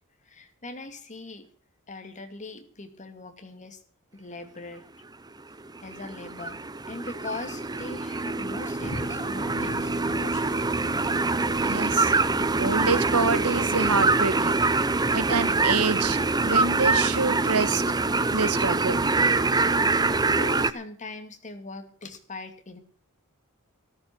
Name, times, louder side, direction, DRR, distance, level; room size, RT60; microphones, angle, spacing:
voice 1, 0.2-1.5 1.9-3.8 4.1-4.8 5.8-6.6 6.9-10.8 20.3-22.8, left 2 dB, 35° left, 6 dB, 2.5 m, -40 dB
sound 1, 5.7-20.7, right 3 dB, 20° right, 0.6 m, -24 dB
sound 2, 8.8-14.5, left 1 dB, 50° left, 4.4 m, -42 dB
voice 2, 11.6-12.1 12.6-14.5 15.1-17.8 18.3-19.1, right 4 dB, 85° right, 15 dB, 1.2 m, -27 dB
14.0 x 13.5 x 6.0 m, 0.42 s
head